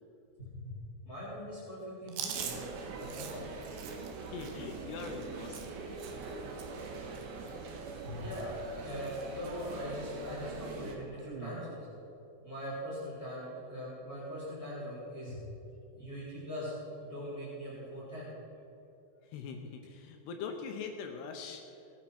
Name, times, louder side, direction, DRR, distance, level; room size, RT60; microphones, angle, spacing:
voice 1, 0.4-2.6 3.0-3.6 8.0-8.5 8.8-11.9 12.4-15.4 15.9-18.3, equal, 20° left, -8 dB, 3.9 m, -41 dB
Chewing mastication, 2.1-6.3 6.6-6.9 7.1-8.1 8.3-8.6 8.9-9.6 10.0-10.1 11.2-11.6, right 8 dB, 85° right, 3.4 m, -44 dB
sound 1, 2.3-11.0, right 4 dB, 70° right, 3.2 m, -43 dB
voice 2, 4.3-6.0 19.3-21.6, left 5 dB, 75° left, 4 dB, 2.9 m, -42 dB
18.5 x 9.0 x 6.0 m, 2.8 s
omnidirectional pair, 4.8 m